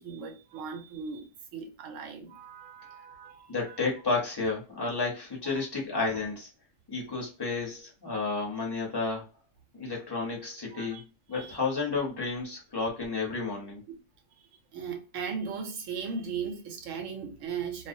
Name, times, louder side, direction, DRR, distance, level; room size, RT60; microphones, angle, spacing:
voice 1, 0.0-3.8 5.4-5.6 10.7-11.0 11.3-11.6 13.9-14.0 14.4-17.9, right 6 dB, 90° right, 1.0 m, -38 dB
voice 2, 3.5-6.5 6.9-9.3 9.7-11.0 11.3-13.8, left 4 dB, 25° left, 0.8 m, -31 dB
2.4 x 2.0 x 2.6 m
omnidirectional pair, 1.3 m